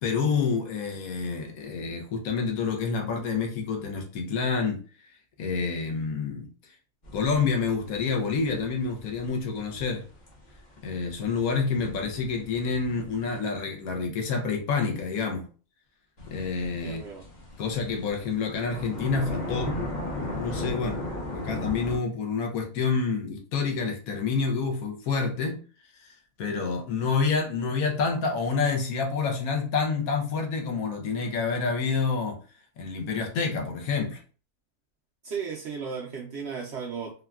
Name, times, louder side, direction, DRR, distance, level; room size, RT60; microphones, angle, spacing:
voice 1, 0.0-4.8 5.4-6.5 7.1-10.0 10.8-15.5 16.3-17.0 17.6-19.7 20.4-21.0 21.3-25.6 26.4-32.4 32.8-34.2, left 5 dB, 75° left, 1.1 m, -28 dB
sound 1, 7.0-13.4 16.2-22.0, left 1 dB, 40° left, 0.7 m, -37 dB
voice 2, 16.8-17.2 35.2-37.1, right 6 dB, 65° right, 0.7 m, -35 dB
3.5 x 2.2 x 2.3 m
omnidirectional pair, 1.6 m